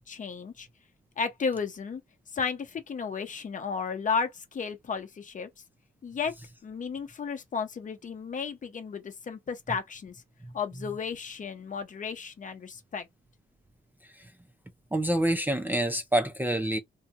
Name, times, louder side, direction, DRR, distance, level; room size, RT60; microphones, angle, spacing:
voice 1, 0.1-0.7 1.2-2.0 2.3-5.5 6.0-6.3 6.6-10.2 10.5-13.1, left 5 dB, 40° left, 0.8 m, -33 dB
voice 2, 14.9-16.8, right 1 dB, 10° right, 0.5 m, -27 dB
2.7 x 2.6 x 2.2 m
cardioid pair, 90°, 20 cm